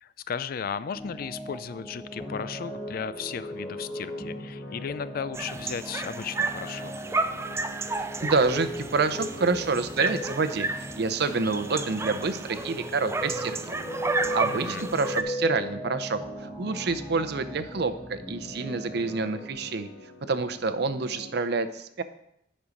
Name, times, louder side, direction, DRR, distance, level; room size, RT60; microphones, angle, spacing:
voice 1, 0.0-6.9 14.4-14.8, left 7 dB, 50° left, 15 dB, 0.4 m, -35 dB
sound 1, 0.9-19.5, equal, 10° left, 0.8 m, -38 dB
sound 2, 2.1-21.3, left 1 dB, 85° left, 1.0 m, -47 dB
sound 3, 5.3-15.2, right 3 dB, 15° right, 0.4 m, -32 dB
voice 2, 8.0-10.7 11.0-13.7 14.3-19.9 20.3-22.0, right 4 dB, 60° right, 10 dB, 0.6 m, -28 dB
9.7 x 5.5 x 5.1 m, 0.75 s
head